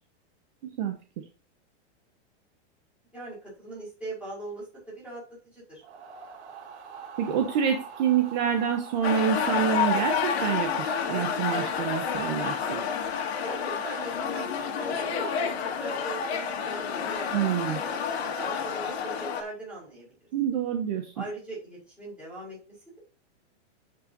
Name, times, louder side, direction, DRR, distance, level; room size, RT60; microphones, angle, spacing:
voice 1, 0.6-1.2 7.2-12.8 17.3-17.8 20.3-21.1, right 8 dB, 40° right, 4 dB, 1.1 m, -27 dB
voice 2, 3.1-5.8 13.4-20.3 21.1-23.0, right 1 dB, 5° right, -8 dB, 5.0 m, -40 dB
sound 1, 5.8-14.9, right 6 dB, 70° right, 2.3 m, -45 dB
sound 2, 9.0-19.4, left 7 dB, 65° left, 2.0 m, -29 dB
12.0 x 5.7 x 2.8 m, 0.36 s
supercardioid pair, 175°, 35 cm